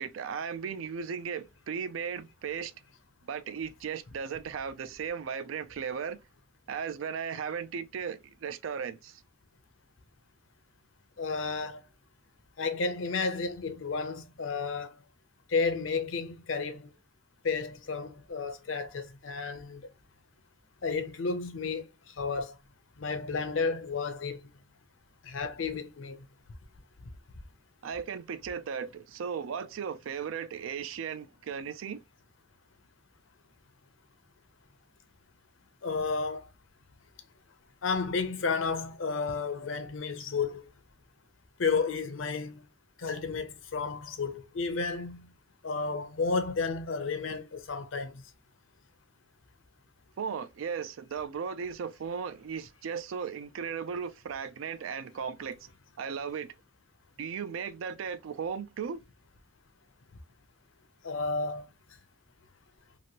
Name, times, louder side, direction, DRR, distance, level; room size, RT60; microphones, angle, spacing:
voice 1, 0.0-2.7 3.2-6.2 6.7-9.2 27.8-32.0 50.2-55.7 56.0-56.5 57.2-59.0, right 6 dB, 90° right, 0.4 m, -36 dB
voice 2, 11.2-11.8 12.6-14.9 15.5-16.9 17.4-19.8 20.8-21.9 22.2-22.6 23.0-24.4 25.2-26.2 35.8-36.4 37.8-40.6 41.6-42.6 43.0-45.3 45.6-48.2 61.0-61.7, left 4 dB, 85° left, 0.6 m, -32 dB
2.9 x 2.6 x 2.8 m
head